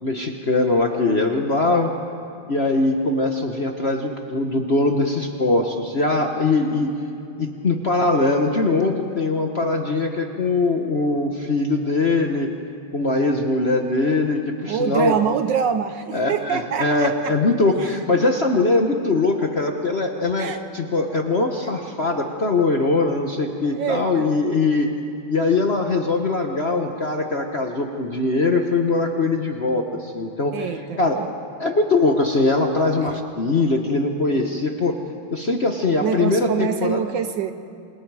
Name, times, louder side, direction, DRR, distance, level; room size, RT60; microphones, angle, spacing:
voice 1, 0.0-1.9 2.5-6.9 7.4-12.5 12.9-15.1 16.1-24.9 25.3-31.2 31.6-35.0 35.3-37.0, left 3 dB, 40° left, 3 dB, 1.0 m, -21 dB
voice 2, 14.7-17.4 17.8-17.9 20.4-20.6 23.6-24.3 30.5-31.3 32.8-32.9 36.0-37.5, right 7 dB, 70° right, 10 dB, 1.2 m, -25 dB
27.5 x 27.5 x 4.8 m, 2.6 s
omnidirectional pair, 2.4 m